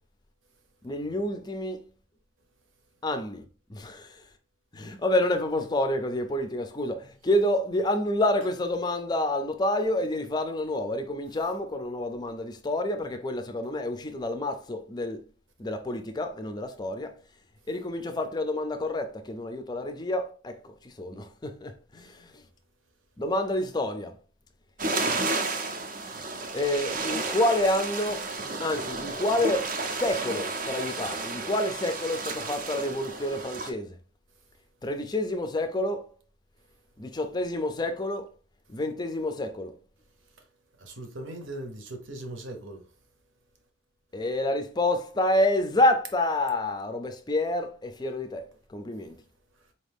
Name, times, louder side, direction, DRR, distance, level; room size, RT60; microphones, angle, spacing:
voice 1, 0.8-1.8 3.0-3.4 3.7-4.2 4.7-15.2 15.6-17.2 17.7-22.3 23.2-24.2 26.5-28.3 28.6-34.0 34.8-36.1 37.0-38.3 38.7-39.7 44.1-49.1, left 1 dB, 20° left, 0.4 m, -28 dB
sound 1, 24.8-33.7, right 3 dB, 40° right, 0.5 m, -32 dB
voice 2, 40.8-42.8, right 1 dB, 75° right, 0.9 m, -39 dB
4.3 x 2.6 x 3.4 m
head